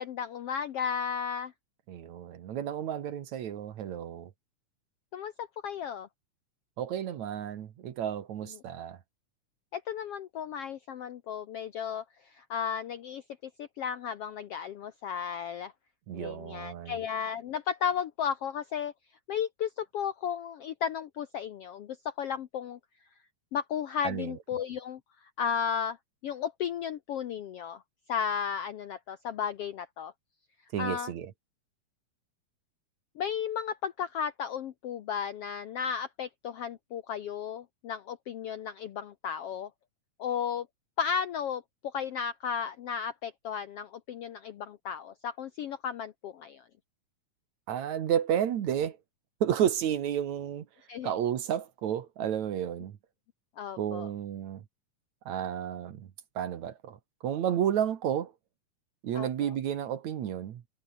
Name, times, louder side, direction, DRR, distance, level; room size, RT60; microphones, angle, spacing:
voice 1, 0.0-1.5 5.1-6.1 9.7-13.2 13.6-15.7 16.1-18.9 19.3-22.8 23.5-25.0 25.4-26.0 26.2-27.8 28.1-30.1 30.8-31.1 33.2-39.7 40.2-40.7 41.0-46.6 50.9-51.1 53.6-54.1 59.1-59.5, left 7 dB, 70° left, 1.5 m, -34 dB
voice 2, 1.9-4.3 6.8-9.0 16.1-17.0 24.0-24.4 30.7-31.3 47.7-49.0 49.4-50.7 51.0-53.0 53.8-54.6 55.3-56.1 56.4-57.0 57.2-58.3 59.0-60.6, right 9 dB, 60° right, 2.7 m, -31 dB
omnidirectional pair, 3.9 m